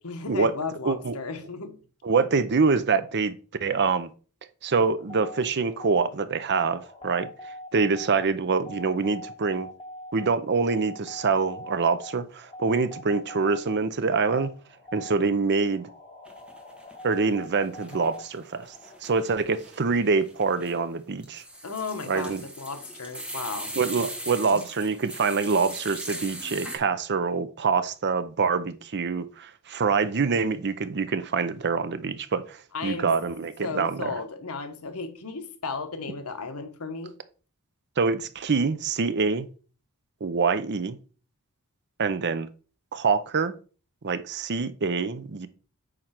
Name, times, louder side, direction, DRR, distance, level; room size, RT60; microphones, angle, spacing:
voice 1, 0.0-1.8 21.6-24.1 24.5-24.6 32.7-33.1 33.6-37.1, left 4 dB, 75° left, 1.3 m, -35 dB
voice 2, 0.8-1.2 2.0-3.4 3.6-4.1 4.6-7.3 7.7-9.7 10.1-14.5 14.9-15.9 17.0-18.7 19.0-21.4 22.1-22.4 23.8-32.6 32.8-34.1 38.0-39.5 40.2-41.0 42.0-42.5 42.9-43.5 44.0-45.5, right 4 dB, 50° right, 0.6 m, -25 dB
sound 1, 5.0-19.0, left 1 dB, 25° left, 2.8 m, -43 dB
sound 2, 16.3-17.3 17.5-26.8, right 1 dB, 5° right, 1.4 m, -40 dB
8.8 x 3.3 x 5.9 m
head